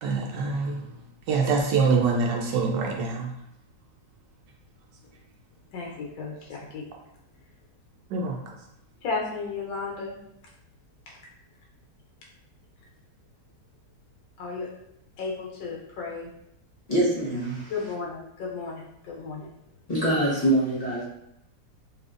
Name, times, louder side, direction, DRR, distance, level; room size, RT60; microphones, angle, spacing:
voice 1, 0.0-1.0 1.3-3.3 8.1-8.5, right 4 dB, 75° right, 1 dB, 1.2 m, -25 dB
voice 2, 5.7-6.8 9.0-10.2 14.4-14.7 15.2-16.3 17.7-19.5, left 4 dB, 85° left, -3 dB, 1.6 m, -34 dB
voice 3, 16.9-17.7 19.9-21.0, right 1 dB, 45° left, -8 dB, 0.4 m, -24 dB
4.2 x 2.9 x 2.5 m, 0.78 s
omnidirectional pair, 2.0 m